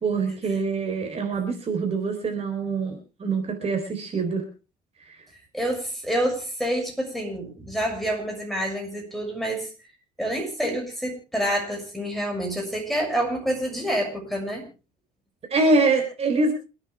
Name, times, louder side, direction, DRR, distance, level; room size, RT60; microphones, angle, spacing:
voice 1, 0.0-4.5 5.1-5.2 15.5-16.5, right 3 dB, 35° right, 4 dB, 4.0 m, -24 dB
voice 2, 5.5-9.7 10.2-14.7, right 1 dB, ahead, 1 dB, 6.6 m, -27 dB
28.0 x 9.5 x 3.4 m, 0.31 s
cardioid pair, 110°, 17 cm